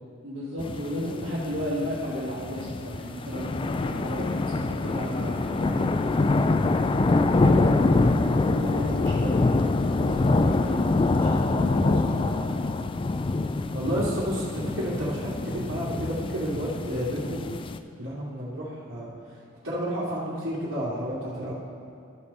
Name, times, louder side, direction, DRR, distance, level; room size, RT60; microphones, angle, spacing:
voice 1, 0.2-6.6 7.3-7.7 8.2-9.6 9.9-10.8 11.1-12.4, equal, 70° right, -11 dB, 2.6 m, -34 dB
Storm in stereo, 0.6-17.8, left 3 dB, 25° left, 0.3 m, -25 dB
voice 2, 13.7-17.4 18.0-19.1 19.6-21.5, equal, 85° right, -12 dB, 2.5 m, -31 dB
13.5 x 6.5 x 4.2 m, 2.7 s
head